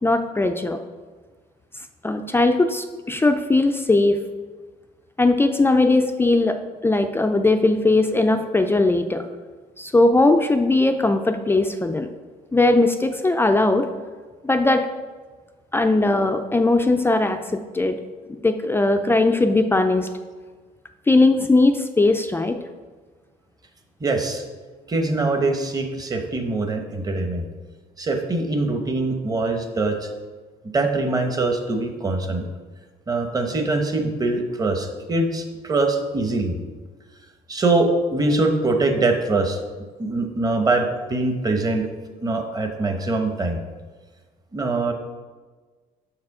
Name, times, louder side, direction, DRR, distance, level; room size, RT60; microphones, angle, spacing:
voice 1, 0.0-0.8 2.0-4.2 5.2-6.6 6.8-9.2 9.8-12.1 12.5-13.9 14.4-14.9 15.7-18.0 18.4-20.1 21.1-22.6, left 2 dB, 15° left, 7 dB, 0.4 m, -19 dB
voice 2, 24.0-24.4 24.9-27.4 28.0-30.1 30.7-32.4 33.1-36.6 37.5-39.6 40.0-41.8 42.2-43.6 44.5-44.9, right 2 dB, 20° right, 5 dB, 0.9 m, -23 dB
6.4 x 4.8 x 4.8 m, 1.4 s
cardioid pair, 110°, 17 cm